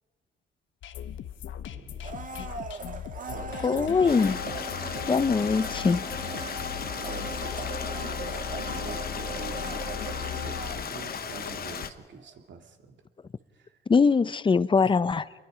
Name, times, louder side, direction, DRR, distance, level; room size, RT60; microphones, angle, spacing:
sound 1, 0.8-10.9, left 9 dB, 75° left, 0.9 m, -39 dB
voice 1, 1.7-2.3 3.3-4.2 6.9-13.0 13.5-13.8 14.8-15.0, right 5 dB, 65° right, 2.5 m, -46 dB
Domestic sounds home sounds, 2.0-12.0 12.3-12.4, right 3 dB, 40° right, 1.8 m, -39 dB
voice 2, 3.6-4.4 5.1-6.1 13.9-15.2, left 5 dB, 25° left, 0.7 m, -22 dB
Stream, 4.1-11.9, left 7 dB, 50° left, 1.1 m, -36 dB
28.5 x 22.0 x 5.1 m
cardioid pair, 90°, 20 cm